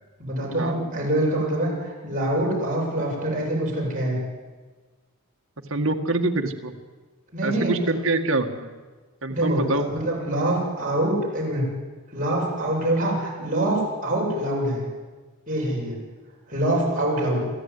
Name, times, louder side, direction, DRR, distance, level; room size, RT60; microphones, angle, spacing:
voice 1, 0.2-4.2 7.3-7.7 9.3-11.6 12.1-14.8 15.5-16.0 16.5-17.4, right 1 dB, 35° right, -3 dB, 7.7 m, -25 dB
voice 2, 5.7-6.7 7.4-8.7 9.2-9.8, right 2 dB, 65° right, 5 dB, 1.9 m, -25 dB
26.0 x 16.0 x 9.8 m, 1.3 s
head